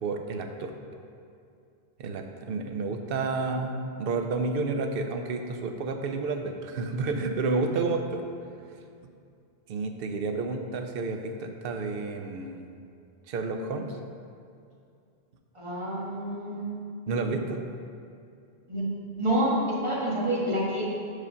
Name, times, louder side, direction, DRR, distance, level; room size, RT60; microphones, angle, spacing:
voice 1, 0.0-0.7 2.0-8.2 9.7-12.7 13.3-14.0 17.1-17.6, right 3 dB, 70° right, 5 dB, 0.8 m, -30 dB
voice 2, 15.5-16.7 18.7-18.9 19.2-20.8, right 1 dB, 30° right, -5 dB, 1.3 m, -28 dB
5.2 x 5.0 x 5.6 m, 2.5 s
omnidirectional pair, 1.0 m